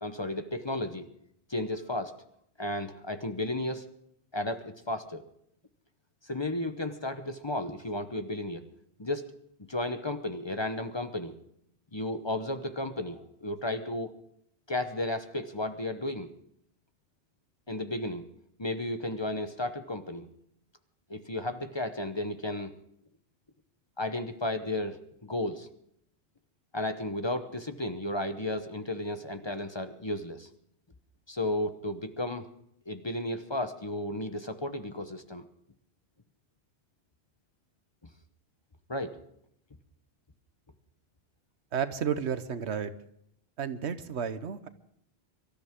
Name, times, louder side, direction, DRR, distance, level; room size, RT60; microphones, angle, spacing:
voice 1, 0.0-1.1 1.5-2.1 2.6-3.8 4.3-5.2 6.2-8.7 9.0-9.3 9.7-11.4 11.9-14.1 14.7-16.3 17.7-18.3 18.6-20.3 21.1-22.7 24.0-25.7 26.7-30.5 31.3-32.5 32.9-35.5 38.9-39.2, left 1 dB, 25° left, 8 dB, 0.9 m, -33 dB
voice 2, 41.7-42.9 43.6-44.7, right 7 dB, 90° right, 11 dB, 1.2 m, -32 dB
24.5 x 13.5 x 3.6 m, 0.73 s
omnidirectional pair, 1.1 m